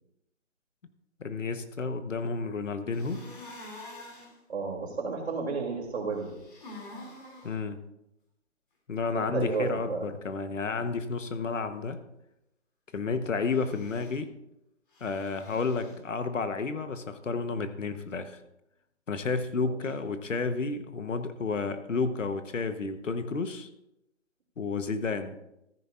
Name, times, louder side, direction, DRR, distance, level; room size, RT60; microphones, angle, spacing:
voice 1, 1.2-3.2 7.4-7.8 8.9-12.0 12.9-14.3 15.0-18.4 19.1-23.7 24.6-25.4, left 4 dB, 80° left, 10 dB, 1.2 m, -31 dB
sound 1, 2.9-4.3 6.1-7.5 13.4-14.2 14.9-16.0, left 2 dB, 40° left, 2.8 m, -47 dB
voice 2, 4.5-6.4 9.1-10.1 19.7-19.8, right 4 dB, 55° right, 0 dB, 3.0 m, -32 dB
13.5 x 9.9 x 2.5 m, 0.87 s
hypercardioid pair, 170°, 37 cm